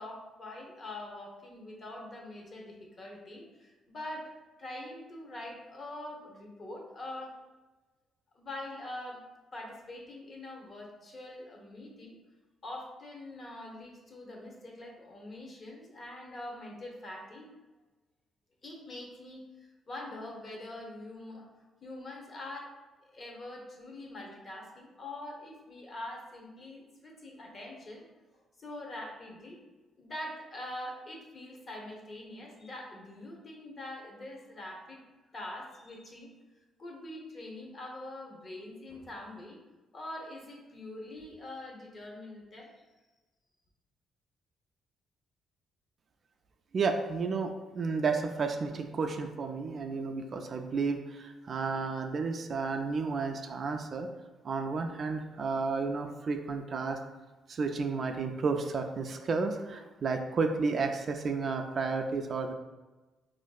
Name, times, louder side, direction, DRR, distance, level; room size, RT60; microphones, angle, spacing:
voice 1, 0.0-4.3 4.6-7.4 8.3-9.2 9.5-12.2 12.6-17.5 18.6-22.7 23.1-28.1 28.6-29.6 30.0-35.0 35.3-36.3 36.8-39.6 39.9-42.7, left 1 dB, 40° left, -1 dB, 0.8 m, -44 dB
voice 2, 46.7-54.1 54.4-57.0 57.5-62.5, right 4 dB, 50° right, 4 dB, 0.3 m, -32 dB
4.0 x 2.5 x 2.3 m, 1.2 s
cardioid pair, 90°, 0 cm